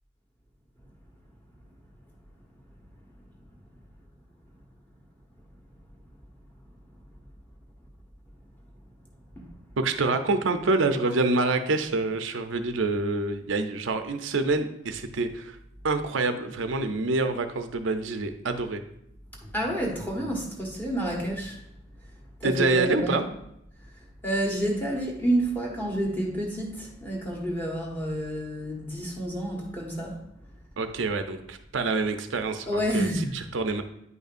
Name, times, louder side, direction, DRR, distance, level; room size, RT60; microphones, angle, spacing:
voice 1, 9.8-15.6 15.8-18.8 22.4-23.2 30.8-33.1 33.3-33.8, right 3 dB, 80° right, 7 dB, 0.6 m, -26 dB
voice 2, 19.4-21.6 22.4-23.2 24.0-30.2 32.7-33.3, right 1 dB, 10° left, -2 dB, 1.3 m, -29 dB
9.6 x 5.4 x 2.5 m, 0.79 s
head